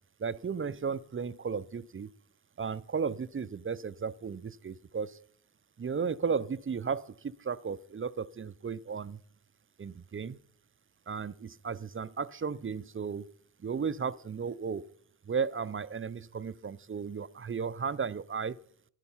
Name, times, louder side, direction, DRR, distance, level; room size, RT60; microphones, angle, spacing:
voice 1, 0.2-2.1 2.6-5.2 5.8-9.2 9.8-10.4 11.1-13.3 13.6-14.9 15.3-18.6, right 6 dB, 35° right, 0.4 m, -34 dB
11.5 x 11.0 x 5.6 m
wide cardioid pair, 105°, 40 cm